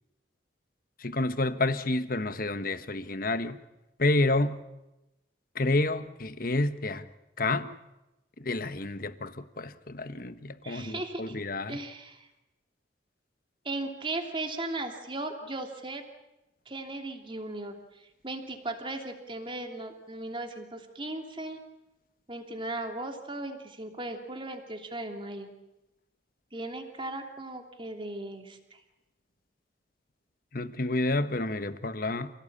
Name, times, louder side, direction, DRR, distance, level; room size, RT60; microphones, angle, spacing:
voice 1, 1.0-3.6 4.0-4.6 5.5-7.0 7.4-7.7 8.4-11.8 30.5-32.3, left 2 dB, 50° left, 1.3 m, -29 dB
voice 2, 10.6-11.4 11.7-12.3 13.6-16.0 16.7-21.6 22.3-25.5 26.5-28.8, right 2 dB, 25° right, 3.0 m, -37 dB
28.5 x 17.5 x 8.7 m
head